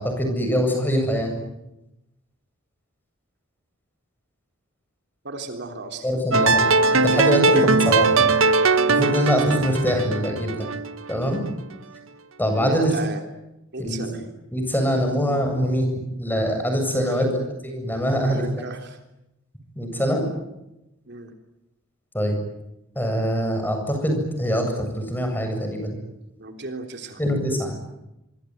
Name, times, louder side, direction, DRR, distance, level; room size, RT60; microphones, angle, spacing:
voice 1, 0.0-1.3 6.0-6.6 6.9-8.3 8.9-10.7 11.1-11.4 12.4-12.9 13.8-14.0 14.5-15.9 16.2-17.3 17.6-18.5 19.8-20.3 22.1-22.4 23.0-26.0 27.2-27.7, equal, 10° left, 4 dB, 7.9 m, -23 dB
voice 2, 5.2-6.1 8.9-9.2 12.6-13.2 13.7-14.3 16.9-17.4 18.2-19.0 21.0-21.3 26.4-27.2, right 2 dB, 55° right, 4 dB, 3.4 m, -34 dB
sound 1, 6.3-11.4, right 4 dB, 75° right, 1.2 m, -20 dB
25.0 x 25.0 x 9.4 m, 0.91 s
head